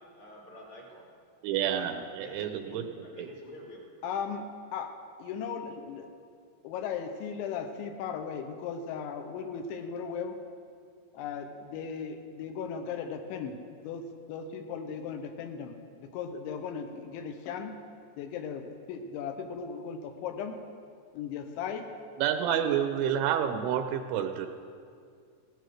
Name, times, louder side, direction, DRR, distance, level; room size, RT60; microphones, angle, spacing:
voice 1, 0.2-1.0 1.7-1.9 2.2-3.8, equal, 50° left, -3 dB, 2.5 m, -48 dB
voice 2, 1.4-3.3 22.2-24.5, right 9 dB, 85° right, 7 dB, 2.9 m, -29 dB
voice 3, 4.0-6.1 6.6-10.4 11.1-13.6 13.8-17.8 18.2-20.6 21.1-21.9 22.5-22.9, left 6 dB, 80° left, 6 dB, 3.1 m, -37 dB
17.0 x 9.2 x 6.4 m, 2.3 s
omnidirectional pair, 5.5 m